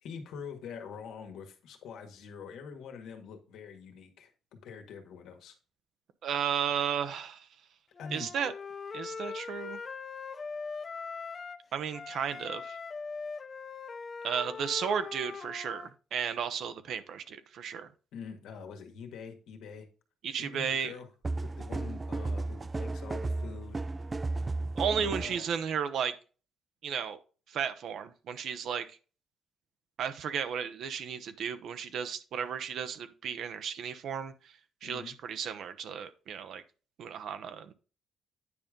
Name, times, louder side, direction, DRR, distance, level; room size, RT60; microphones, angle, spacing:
voice 1, 0.0-5.6 8.0-8.3 18.1-19.9 20.4-21.1 21.4-23.8 25.0-25.4 34.8-35.2, left 6 dB, 85° left, 4 dB, 1.7 m, -45 dB
voice 2, 6.2-7.5 8.1-8.5 8.9-9.8 11.7-12.8 14.2-17.9 20.2-20.9 24.7-26.1 26.8-27.2 27.5-28.9 30.0-34.3 34.8-36.6 37.0-37.7, right 7 dB, 70° right, 10 dB, 0.8 m, -34 dB
Wind instrument woodwind instrument, 8.0-11.6 11.9-15.9, left 5 dB, 40° left, 0.5 m, -41 dB
sound 1, 21.2-25.4, right 2 dB, 25° right, 0.3 m, -34 dB
9.6 x 5.2 x 3.7 m, 0.36 s
cardioid pair, 90°, 0 cm